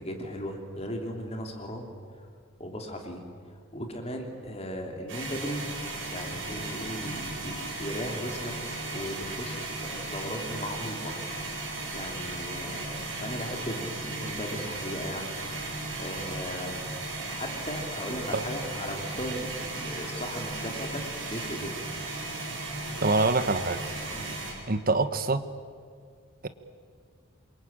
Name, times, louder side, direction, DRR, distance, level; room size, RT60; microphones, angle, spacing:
voice 1, 0.0-1.9 2.6-3.2 3.7-5.7 6.1-8.5 8.9-11.2 11.9-15.4 16.0-16.8 17.3-21.7 24.1-24.4, equal, 30° left, 3 dB, 3.2 m, -37 dB
sound 1, 5.1-24.5, right 2 dB, 60° right, 7.6 m, -36 dB
voice 2, 23.0-23.8 24.7-25.4, right 3 dB, 40° right, 11 dB, 1.2 m, -25 dB
27.5 x 23.0 x 8.8 m, 2.1 s
head